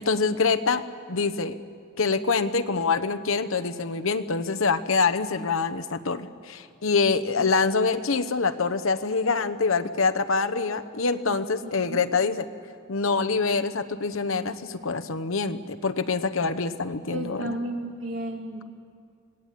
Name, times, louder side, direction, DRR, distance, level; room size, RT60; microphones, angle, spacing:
voice 1, 0.0-1.6 2.0-12.5 12.9-17.6, left 4 dB, 90° left, 9 dB, 1.0 m, -25 dB
voice 2, 11.6-12.0 17.1-18.6, right 1 dB, 75° right, 2 dB, 2.8 m, -33 dB
26.5 x 18.5 x 8.4 m, 2.2 s
head